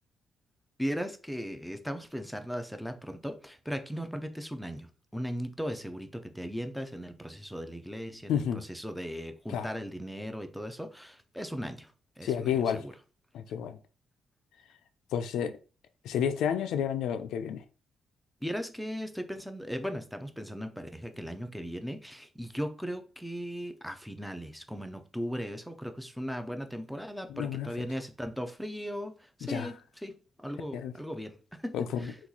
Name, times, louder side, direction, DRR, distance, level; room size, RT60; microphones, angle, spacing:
voice 1, 0.8-12.9 18.4-29.8 30.0-32.2, equal, ahead, 0.5 m, -38 dB
voice 2, 8.3-8.6 9.5-9.7 12.2-12.8 13.3-13.8 15.1-15.6 16.0-17.6 27.3-27.7 29.4-29.7 30.7-30.9 31.7-32.1, left 8 dB, 90° left, 0.3 m, -30 dB
2.9 x 2.3 x 3.8 m
cardioid pair, 100°, 0 cm